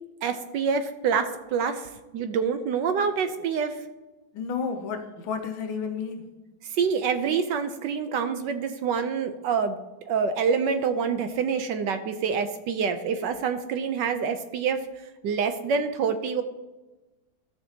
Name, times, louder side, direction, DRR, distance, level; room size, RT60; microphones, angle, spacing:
voice 1, 0.2-3.8 6.6-9.8 10.1-16.4, right 6 dB, 70° right, 1.1 m, -26 dB
voice 2, 4.3-6.3, left 5 dB, 80° left, 1.7 m, -31 dB
13.5 x 6.8 x 2.8 m
omnidirectional pair, 2.2 m